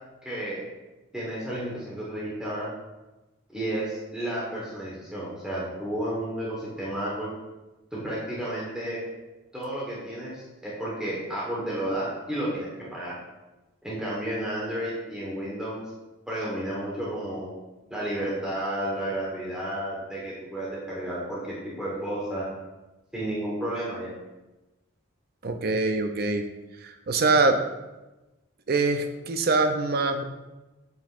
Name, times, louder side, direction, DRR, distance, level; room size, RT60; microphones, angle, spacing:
voice 1, 0.2-0.6 1.1-2.7 3.5-7.3 7.9-9.0 9.5-13.1 13.8-15.8 16.3-17.5 17.9-22.5 23.1-24.1, right 1 dB, 5° right, -7 dB, 1.3 m, -32 dB
voice 2, 25.4-26.4 26.8-27.6 28.7-30.2, right 3 dB, 50° right, 6 dB, 0.5 m, -24 dB
8.0 x 5.3 x 2.5 m, 1.1 s
head